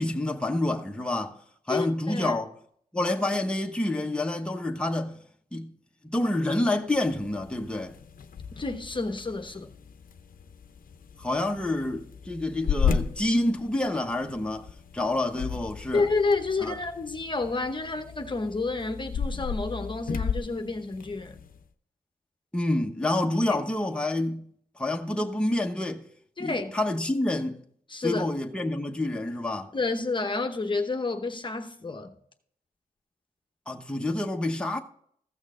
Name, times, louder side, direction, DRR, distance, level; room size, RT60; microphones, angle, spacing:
voice 1, 0.0-1.4 1.7-2.5 2.9-5.2 5.5-5.7 6.1-7.9 11.2-14.7 14.9-16.0 16.6-16.8 22.5-26.0 26.4-27.6 28.0-29.7 33.7-34.8, left 1 dB, 5° left, 1.0 m, -28 dB
voice 2, 1.7-2.4 8.6-9.7 15.9-21.4 23.5-23.6 26.4-26.7 27.9-28.2 29.7-32.1, left 3 dB, 30° left, 0.9 m, -29 dB
sound 1, 6.9-21.6, left 6 dB, 70° left, 0.6 m, -35 dB
15.0 x 6.3 x 3.7 m
cardioid pair, 75°, 15 cm